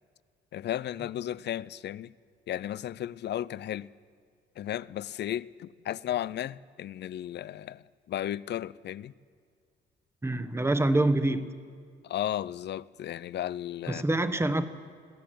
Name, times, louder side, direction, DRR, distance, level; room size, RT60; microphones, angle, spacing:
voice 1, 0.5-2.1 2.5-3.9 4.6-9.1 12.0-14.0, left 11 dB, 60° left, 0.5 m, -34 dB
voice 2, 10.2-11.5 13.9-14.6, right 2 dB, 15° right, 1.2 m, -25 dB
22.0 x 15.5 x 7.7 m
cardioid pair, 90°, 20 cm